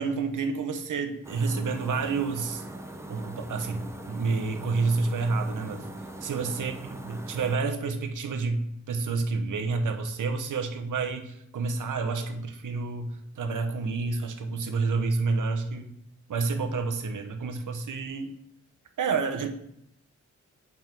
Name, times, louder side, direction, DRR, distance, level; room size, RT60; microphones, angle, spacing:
voice 1, 0.0-2.6 3.1-5.9 6.2-8.6 8.9-15.9 16.3-18.3 19.0-19.5, right 4 dB, 90° right, 5 dB, 1.0 m, -29 dB
sound 1, 1.2-7.6, right 1 dB, 10° right, 0.7 m, -41 dB
7.4 x 5.5 x 4.6 m, 0.74 s
wide cardioid pair, 145°, 31 cm